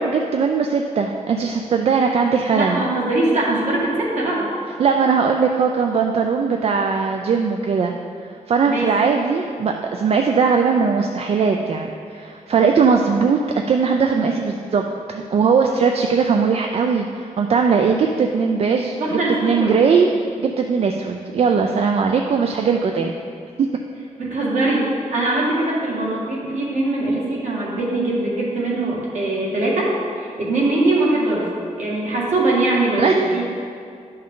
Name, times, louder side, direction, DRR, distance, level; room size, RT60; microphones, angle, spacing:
voice 1, 0.0-2.8 4.8-7.9 8.2-13.4 13.7-14.8 15.1-20.1 20.4-23.1 23.6-23.7 33.0-33.4, right 5 dB, 50° right, 3 dB, 0.4 m, -19 dB
voice 2, 2.5-4.5 8.7-8.9 19.0-19.8 24.2-31.5 31.8-33.4, right 2 dB, 65° right, -5 dB, 2.0 m, -21 dB
11.5 x 5.4 x 3.8 m, 2.3 s
wide cardioid pair, 175°, 13 cm